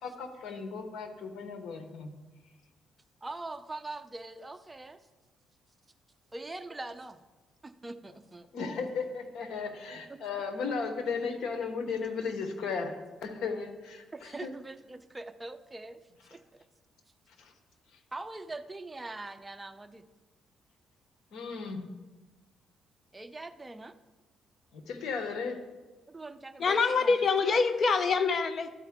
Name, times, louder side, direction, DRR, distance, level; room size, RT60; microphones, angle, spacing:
voice 1, 0.0-2.1 8.5-14.5 17.4-17.5 21.3-21.9 24.7-25.6, left 5 dB, 75° left, 7 dB, 1.0 m, -35 dB
voice 2, 3.2-5.0 6.3-7.2 7.6-8.5 10.1-10.4 14.1-16.0 16.3-16.6 18.1-20.0 23.1-24.0 26.1-27.2, right 2 dB, 15° right, 9 dB, 0.5 m, -42 dB
voice 3, 26.6-28.7, left 4 dB, 50° left, 11 dB, 0.6 m, -25 dB
12.5 x 4.6 x 3.6 m, 1.2 s
cardioid pair, 90°, 0 cm